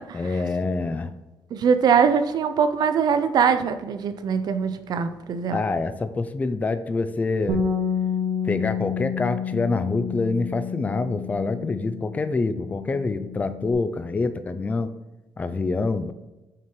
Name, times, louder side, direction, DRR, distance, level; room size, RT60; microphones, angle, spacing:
voice 1, 0.1-1.1 5.5-7.6 8.4-14.9 15.4-16.1, left 3 dB, 20° left, 10 dB, 0.4 m, -26 dB
voice 2, 1.5-5.6, right 6 dB, 55° right, 10 dB, 0.6 m, -22 dB
Bass guitar, 7.5-13.7, left 6 dB, 80° right, 1.0 m, -29 dB
5.8 x 4.6 x 4.5 m, 1.0 s
cardioid pair, 140°, 8 cm